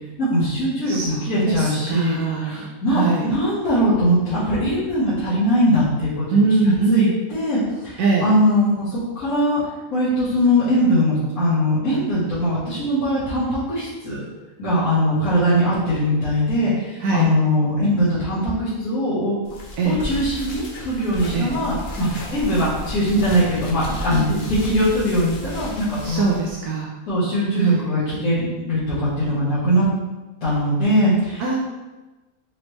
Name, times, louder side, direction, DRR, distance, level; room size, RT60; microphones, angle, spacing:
voice 1, 0.2-9.6 9.9-14.2 14.6-19.4 19.8-26.2 27.1-29.8 30.4-31.6, equal, 80° left, -12 dB, 1.8 m, -21 dB
voice 2, 0.9-2.6 2.9-3.3 6.3-7.1 8.0-8.3 17.0-17.3 19.8-20.0 21.3-21.5 26.0-26.9 27.6-27.9 31.4-31.6, right 4 dB, 75° right, -3 dB, 1.0 m, -21 dB
sound 1, 19.4-26.5, left 1 dB, 45° left, 0.7 m, -33 dB
5.0 x 3.2 x 3.0 m, 1.1 s
omnidirectional pair, 1.5 m